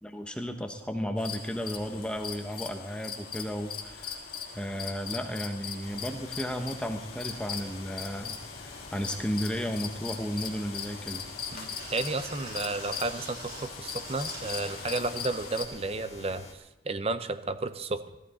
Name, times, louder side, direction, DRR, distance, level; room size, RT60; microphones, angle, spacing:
voice 1, 0.0-4.2 4.5-11.2, equal, 5° left, 5 dB, 0.9 m, -34 dB
sound 1, 1.2-15.7, left 7 dB, 55° left, 1.6 m, -40 dB
sound 2, 5.8-16.5, left 3 dB, 35° left, 2.2 m, -48 dB
sound 3, 7.4-8.1 8.5-8.9 9.3-9.8 10.3-11.1 11.5-14.9 16.0-16.1, right 2 dB, 55° right, 5.6 m, -46 dB
voice 2, 11.5-16.5 16.8-18.0, right 3 dB, 35° right, 12 dB, 0.7 m, -32 dB
17.0 x 14.0 x 4.2 m, 0.95 s
head